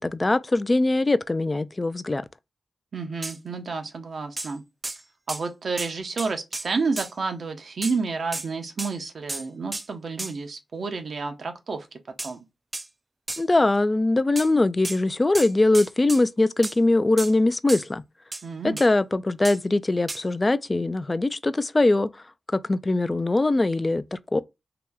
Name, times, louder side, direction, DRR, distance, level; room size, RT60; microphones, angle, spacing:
voice 1, 0.0-2.2 13.4-18.0 18.6-22.1 22.5-24.4, left 2 dB, 30° left, 0.4 m, -22 dB
voice 2, 2.9-4.6 5.3-12.4 18.4-18.8, right 4 dB, 70° right, 0.8 m, -30 dB
sound 1, 3.2-3.4 4.4-4.5 4.8-5.0 5.3-5.5 5.8-5.9 6.2-7.1 7.8-8.0 8.3-8.5 8.8-8.9 9.3-9.5 9.7-9.9 10.2-10.3 12.2-12.3 12.7-12.9 13.3-13.4 14.4-14.5 14.8-15.0 15.4-16.2 16.6-16.8 17.2-17.3 17.7-17.9 18.3-18.4 18.8-18.9 19.5-19.6 20.1-20.2, right 2 dB, 30° right, 0.4 m, -33 dB
3.0 x 2.9 x 3.5 m
cardioid pair, 50°, 0 cm